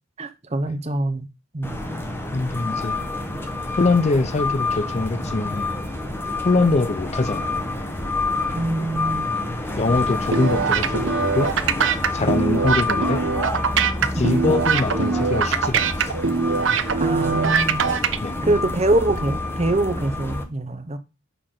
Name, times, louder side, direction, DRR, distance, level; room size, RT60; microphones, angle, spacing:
voice 1, 0.2-1.3 1.5-1.8 8.5-9.3 12.2-12.4 14.0-14.1 17.0-17.9 18.4-21.0, right 2 dB, 30° right, 0.8 m, -24 dB
sound 1, 1.6-20.4, left 2 dB, 10° left, 1.0 m, -28 dB
voice 2, 2.3-3.0 3.8-5.7 6.4-7.6 9.8-11.5 12.1-13.3 14.1-16.1 18.2-18.4, left 3 dB, 30° left, 0.5 m, -23 dB
sound 2, 10.3-18.2, right 5 dB, 65° right, 0.6 m, -22 dB
6.8 x 5.8 x 3.8 m
head